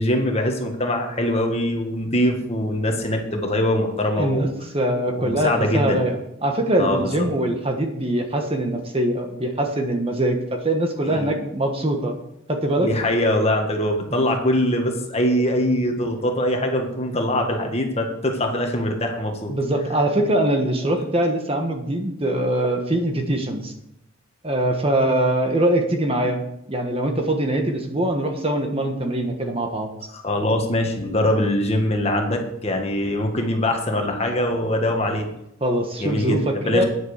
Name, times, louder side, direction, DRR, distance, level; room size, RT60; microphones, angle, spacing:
voice 1, 0.0-4.5 5.1-6.0 6.8-7.3 11.1-11.4 12.8-19.5 30.1-35.3 36.0-36.8, left 1 dB, 30° left, 3 dB, 1.6 m, -23 dB
voice 2, 4.1-4.5 4.7-12.2 12.5-12.9 14.1-14.2 19.5-23.7 24.4-26.4 26.7-29.9 35.6-36.8, right 1 dB, 25° right, 4 dB, 1.3 m, -23 dB
9.8 x 7.9 x 6.5 m, 0.79 s
head